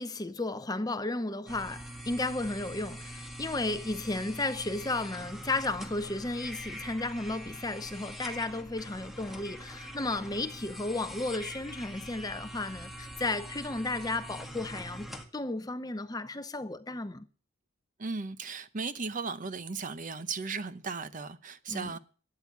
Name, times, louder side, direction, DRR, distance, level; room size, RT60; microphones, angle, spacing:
voice 1, 0.0-17.3 21.7-21.9, left 2 dB, 20° left, 0.7 m, -34 dB
sound 1, 1.5-15.3, equal, ahead, 1.6 m, -43 dB
voice 2, 18.0-22.0, right 4 dB, 40° right, 0.8 m, -36 dB
13.0 x 8.8 x 8.2 m
head